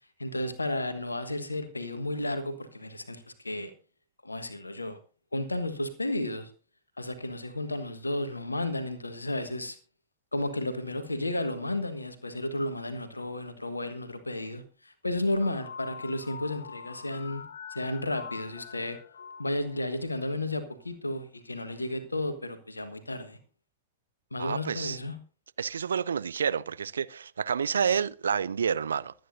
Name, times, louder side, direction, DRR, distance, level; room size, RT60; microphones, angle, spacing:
voice 1, 0.2-3.7 4.2-5.0 5.3-6.5 7.0-9.8 10.3-17.4 17.7-19.0 19.4-23.4 24.3-25.1, left 1 dB, 80° left, 1.3 m, -33 dB
sound 1, 15.4-20.4, left 6 dB, 65° left, 0.8 m, -45 dB
voice 2, 24.4-25.0 25.6-29.1, right 7 dB, 70° right, 0.4 m, -29 dB
22.5 x 9.3 x 2.6 m
figure-of-eight pair, 90°, 0 cm